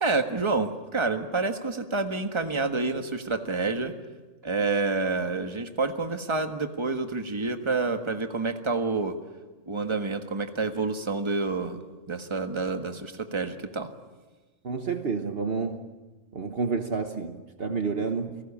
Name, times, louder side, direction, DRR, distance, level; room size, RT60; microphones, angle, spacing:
voice 1, 0.0-3.9 4.4-9.1 9.7-11.8 12.1-13.9, right 3 dB, 25° right, 7 dB, 1.5 m, -28 dB
voice 2, 14.6-15.8 16.3-18.4, right 4 dB, 50° right, 7 dB, 1.4 m, -29 dB
29.0 x 18.5 x 8.7 m, 1.3 s
omnidirectional pair, 1.3 m